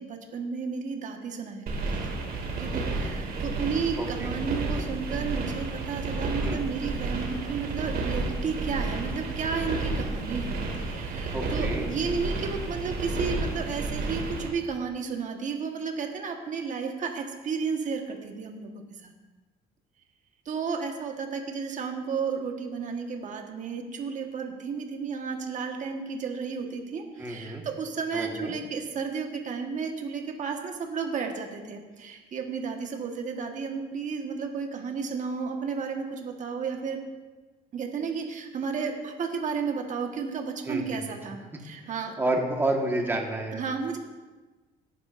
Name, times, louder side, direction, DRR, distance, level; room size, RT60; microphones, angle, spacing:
voice 1, 0.0-1.8 2.6-18.7 19.0-19.1 20.4-37.0 37.7-42.1 43.5-44.0, right 5 dB, 45° right, 3 dB, 1.4 m, -32 dB
sound 1, 1.7-14.5, right 3 dB, 65° right, 2.4 m, -31 dB
voice 2, 4.0-4.3 6.4-6.6 11.3-12.0 27.2-27.6 28.1-28.5 40.6-41.0 41.8-41.9 42.2-43.6, right 2 dB, 15° right, 1 dB, 1.5 m, -30 dB
18.0 x 9.9 x 2.6 m, 1.2 s
cardioid pair, 110°, 17 cm